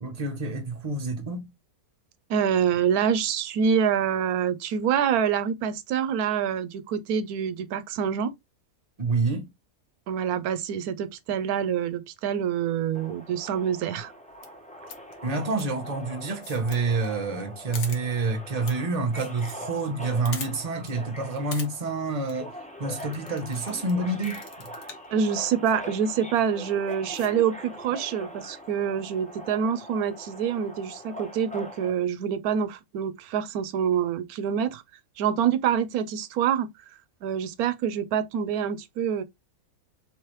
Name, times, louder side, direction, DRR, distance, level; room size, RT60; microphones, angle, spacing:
voice 1, 0.0-1.5 9.0-9.4 15.2-22.5 22.8-24.4, right 3 dB, 30° right, 0.9 m, -28 dB
voice 2, 2.3-8.3 10.1-14.1 25.1-34.8 35.2-36.7 37.2-39.2, right 8 dB, 90° right, 1.1 m, -26 dB
Subway metro underground, 12.9-31.9, equal, 10° left, 0.4 m, -42 dB
sound 1, 14.3-14.5 14.9-15.1 15.5-15.6 16.3-16.8 17.0-17.1 17.4-17.5 17.7-18.0 18.6-18.7 19.0-19.5 19.8-19.9 20.2-20.5 20.9-21.0 21.3-21.7 22.1-22.3 23.0-23.9 24.2-25.1 25.6-25.7 26.3-26.5 26.9-27.3, left 5 dB, 60° left, 1.1 m, -40 dB
3.5 x 3.1 x 3.0 m
omnidirectional pair, 1.5 m